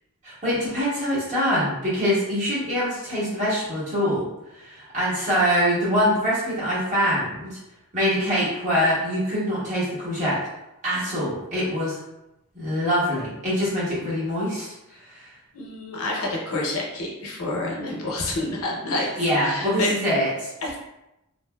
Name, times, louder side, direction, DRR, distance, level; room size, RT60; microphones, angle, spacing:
voice 1, 0.2-4.3 4.5-7.6 7.9-10.4 10.8-12.0 12.5-14.7 15.0-15.3 19.2-20.5, equal, 35° right, -9 dB, 1.3 m, -24 dB
voice 2, 15.5-19.1 19.4-19.9 20.6-20.8, left 2 dB, 70° left, -3 dB, 0.7 m, -28 dB
2.9 x 2.4 x 2.2 m, 0.91 s
head